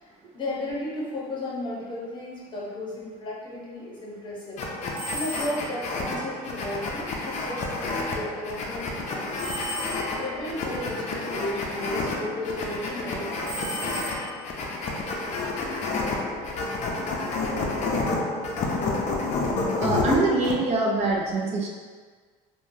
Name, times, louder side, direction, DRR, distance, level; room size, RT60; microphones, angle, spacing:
voice 1, 0.0-4.6 5.1-9.5 10.2-13.5, left 1 dB, 30° left, -5 dB, 0.8 m, -34 dB
sound 1, 4.6-20.6, left 3 dB, 45° left, 0.5 m, -30 dB
sound 2, 4.9-5.8 9.4-10.4 13.4-14.6, equal, 65° right, 0.9 m, -35 dB
voice 2, 19.8-21.7, right 3 dB, 45° right, -1 dB, 0.4 m, -24 dB
3.1 x 2.2 x 2.6 m, 1.5 s
cardioid pair, 125°, 16 cm